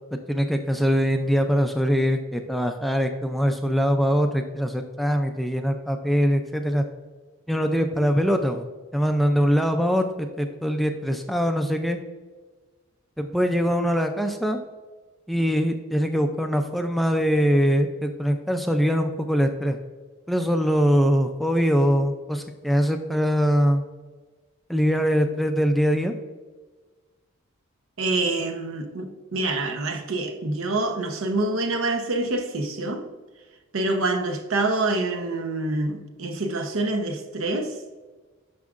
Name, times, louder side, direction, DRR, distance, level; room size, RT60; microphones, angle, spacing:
voice 1, 0.1-6.8 7.5-8.7 8.9-12.0 13.2-14.6 15.3-19.8 20.3-23.8 24.7-26.1, equal, ahead, 0.3 m, -22 dB
voice 2, 28.0-33.1 33.7-37.8, right 2 dB, 75° right, 0.8 m, -26 dB
9.4 x 6.1 x 2.5 m
head